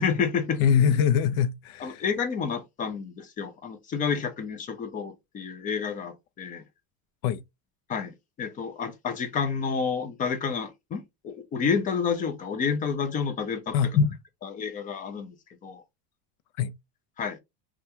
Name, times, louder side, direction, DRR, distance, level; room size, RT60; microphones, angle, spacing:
voice 1, 0.0-0.6 1.8-6.6 7.9-8.1 8.4-14.1 14.4-15.3 15.6-15.8 17.2-17.4, left 6 dB, 20° left, 0.3 m, -29 dB
voice 2, 0.6-2.1 7.2-7.4 13.7-14.0 16.6-16.7, left 8 dB, 70° left, 0.5 m, -23 dB
3.3 x 2.3 x 2.7 m
cardioid pair, 145°, 45 cm